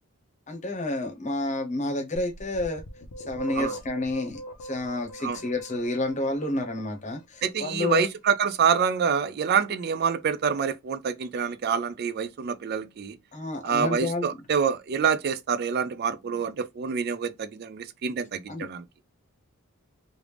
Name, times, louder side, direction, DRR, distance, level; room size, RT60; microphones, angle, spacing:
voice 1, 0.5-2.8 3.3-8.0 13.3-14.3 18.5-18.7, left 2 dB, 30° left, 0.8 m, -30 dB
sound 1, 2.2-7.0, equal, 85° left, 0.6 m, -41 dB
voice 2, 7.4-13.2 13.6-18.8, right 6 dB, 45° right, 0.3 m, -26 dB
3.2 x 2.5 x 3.3 m
head